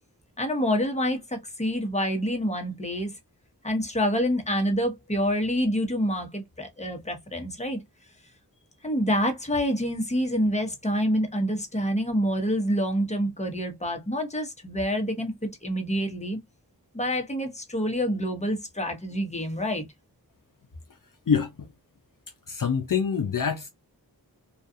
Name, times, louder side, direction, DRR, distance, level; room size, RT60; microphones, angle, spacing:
voice 1, 0.4-3.1 3.6-7.8 8.8-16.4 16.9-19.8, equal, 15° left, 0.9 m, -27 dB
voice 2, 21.3-21.7 22.5-23.7, left 6 dB, 55° left, 0.5 m, -25 dB
2.4 x 2.3 x 2.6 m
wide cardioid pair, 40°, 39 cm